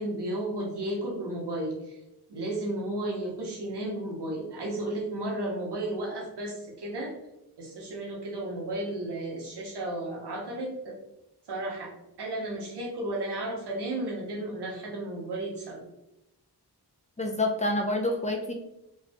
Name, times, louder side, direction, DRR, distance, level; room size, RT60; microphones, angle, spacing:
voice 1, 0.0-2.0 2.3-7.2 7.6-11.0 11.5-11.9 12.2-15.9, right 1 dB, 80° right, -2 dB, 1.1 m, -33 dB
voice 2, 17.2-18.5, left 2 dB, 20° left, 1 dB, 0.6 m, -27 dB
3.2 x 2.4 x 3.5 m, 0.88 s
cardioid pair, 50°, 40 cm